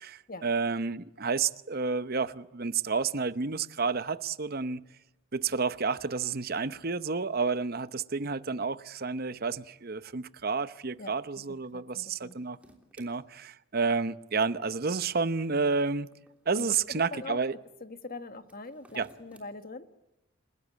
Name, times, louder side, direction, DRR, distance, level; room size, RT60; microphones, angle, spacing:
voice 1, 0.0-4.9 5.3-12.6 13.0-16.1 16.5-17.6 19.0-19.1, right 4 dB, 45° right, 0.8 m, -30 dB
voice 2, 11.5-12.4 16.5-16.8 17.1-17.4 17.8-19.9, left 2 dB, 45° left, 1.5 m, -42 dB
sound 1, 12.1-13.1 15.3-16.9 18.4-19.5, right 1 dB, 5° right, 3.2 m, -58 dB
29.5 x 17.0 x 8.3 m
head